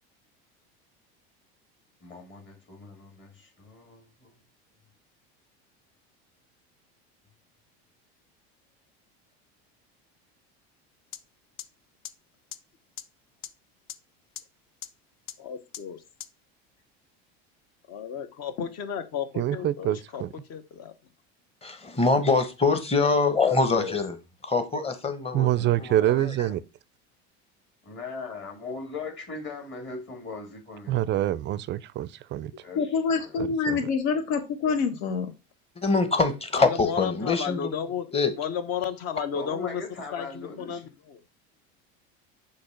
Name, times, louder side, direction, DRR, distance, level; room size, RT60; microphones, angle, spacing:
voice 1, 2.0-4.3 27.8-31.0 32.6-33.3 39.3-40.9, left 4 dB, 35° left, 2.3 m, -39 dB
sound 1, 11.1-11.2 11.6-11.7 12.0-12.1 12.5-12.6 13.0-13.1 13.4-13.5 13.9-14.0 14.4-14.5 14.8-14.9 15.3-15.4 15.7-15.8 16.2-16.3, left 11 dB, 70° left, 0.7 m, -37 dB
voice 2, 15.4-16.0 17.9-20.2 20.5-20.9 36.5-39.8 40.1-41.2, left 7 dB, 50° left, 1.0 m, -33 dB
voice 3, 19.4-20.3 25.3-26.6 30.9-32.5 33.4-33.8, right 13 dB, 35° right, 0.4 m, -26 dB
voice 4, 21.6-24.2 24.4-26.0 35.8-37.7 38.1-38.3, left 4 dB, 20° left, 1.1 m, -24 dB
voice 5, 32.7-35.3, left 5 dB, 85° left, 1.1 m, -26 dB
6.5 x 2.8 x 5.6 m
supercardioid pair, 115°, 32 cm